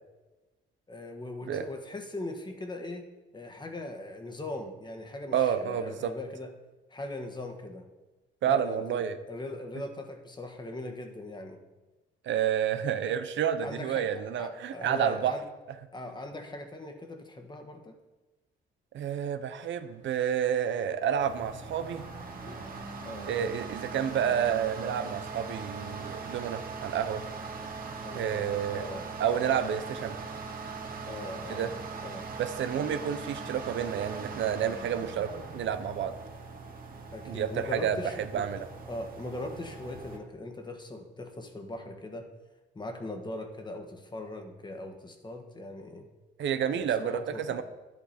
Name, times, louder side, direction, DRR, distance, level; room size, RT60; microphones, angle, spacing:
voice 1, 0.9-3.1 3.3-6.5 6.9-7.9 8.4-11.6 13.6-15.4 15.9-17.9 22.5-22.7 23.0-23.4 28.0-29.1 31.0-31.8 32.0-32.3 37.1-38.5 38.9-42.3 42.7-46.1 46.7-47.6, left 2 dB, 20° left, 5 dB, 1.6 m, -40 dB
voice 2, 5.3-6.1 8.4-9.2 12.2-15.3 18.9-22.0 23.3-27.2 28.1-28.9 29.2-30.2 31.5-31.7 32.4-36.1 37.3-38.0 38.3-38.7 46.4-47.6, right 8 dB, 70° right, 11 dB, 0.8 m, -29 dB
sound 1, 21.2-40.2, right 4 dB, 45° right, 1.8 m, -41 dB
11.0 x 10.0 x 4.3 m, 1.1 s
cardioid pair, 90°, 20 cm